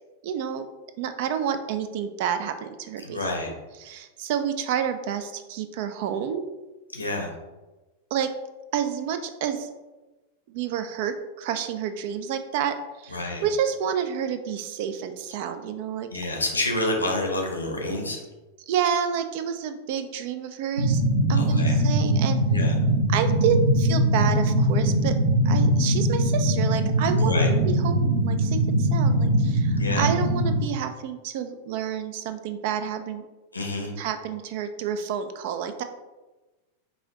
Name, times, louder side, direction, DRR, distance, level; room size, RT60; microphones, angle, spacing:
voice 1, 0.2-0.7 1.0-3.2 3.8-6.5 8.1-8.3 8.7-9.7 10.5-16.1 18.7-21.0 21.3-22.4 23.1-25.2 25.4-33.3 34.0-35.8, right 8 dB, 50° right, 9 dB, 0.4 m, -29 dB
voice 2, 3.0-3.5 6.9-7.3 13.1-13.4 16.1-18.2 21.3-21.8 22.5-22.8 27.2-27.5 29.8-30.1 33.5-33.9, left 2 dB, 80° left, 1 dB, 0.8 m, -28 dB
sound 1, 20.8-30.6, right 1 dB, 65° right, 0.8 m, -22 dB
5.4 x 2.6 x 2.9 m, 1.2 s
figure-of-eight pair, 90°, 0 cm